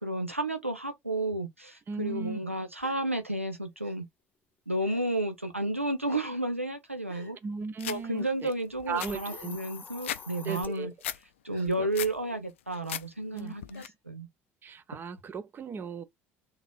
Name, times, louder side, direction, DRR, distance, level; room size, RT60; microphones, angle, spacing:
voice 1, 0.0-4.1 4.7-7.4 7.9-10.9 11.4-14.3, right 1 dB, 90° right, 0.7 m, -32 dB
voice 2, 1.9-2.4 7.4-8.5 8.9-9.6 10.4-10.9 11.8-11.9 13.3-13.5 14.6-16.0, right 5 dB, 30° right, 0.6 m, -37 dB
Gasp, 2.8-3.0 3.8-4.0 4.8-5.2 6.0-6.4 7.1-7.3 8.2-8.4 9.2-9.6 10.5-10.6 11.5-11.7 12.7-12.8 13.7-13.9, right 1 dB, 75° right, 1.8 m, -52 dB
sound 1, 7.8-8.0 8.5-8.6 8.8-10.2 10.6-11.2 11.6-12.2 12.6-13.0 13.4-13.9, left 11 dB, 70° left, 0.4 m, -37 dB
Hiss, 8.8-10.7, left 5 dB, 25° left, 0.9 m, -45 dB
4.0 x 2.7 x 4.4 m
figure-of-eight pair, 65°, 7 cm